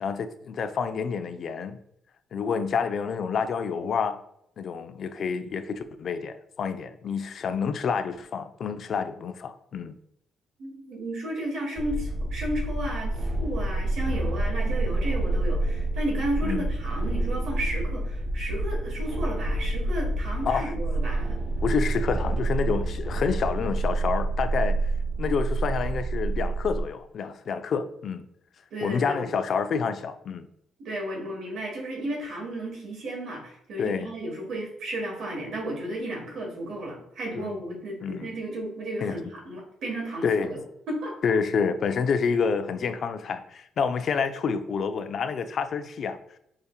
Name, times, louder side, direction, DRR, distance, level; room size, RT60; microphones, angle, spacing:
voice 1, 0.0-1.8 2.3-4.2 4.6-10.0 16.4-16.7 20.5-20.7 21.6-24.8 25.2-28.3 28.8-30.5 33.8-34.1 37.4-37.6 38.0-38.3 39.0-39.2 40.2-40.5 41.2-46.2, left 6 dB, 60° left, 0.3 m, -28 dB
voice 2, 10.6-21.4 28.7-29.2 30.8-40.6 40.9-41.1, right 1 dB, 70° right, 1.4 m, -33 dB
sound 1, 11.8-26.8, right 2 dB, 35° right, 0.5 m, -28 dB
4.8 x 2.7 x 2.3 m
cardioid pair, 90°, 0 cm